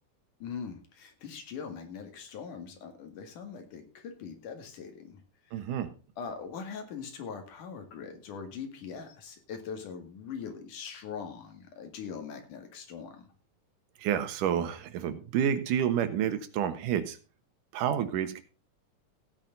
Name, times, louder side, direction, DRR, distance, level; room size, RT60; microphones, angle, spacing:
voice 1, 0.4-5.2 5.5-5.6 6.2-13.3, left 6 dB, 80° left, 6 dB, 3.6 m, -41 dB
voice 2, 5.5-5.9 14.0-17.2 17.7-18.4, right 9 dB, 90° right, 10 dB, 2.8 m, -29 dB
15.5 x 9.1 x 3.9 m, 0.33 s
omnidirectional pair, 3.6 m